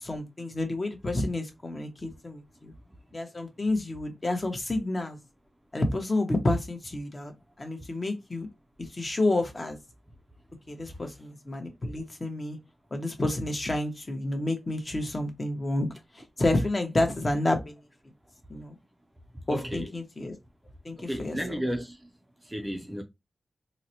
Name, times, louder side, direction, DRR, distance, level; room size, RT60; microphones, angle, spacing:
voice 1, 0.0-2.7 3.1-5.2 5.7-7.3 7.6-8.5 8.8-9.8 10.7-12.6 12.9-17.8 18.5-18.8 19.5-20.4 20.8-21.6, left 2 dB, 30° left, 0.8 m, -29 dB
voice 2, 19.5-19.9 21.0-22.1 22.4-23.0, equal, 15° right, 0.4 m, -33 dB
3.9 x 2.1 x 2.8 m
wide cardioid pair, 120°, 0 cm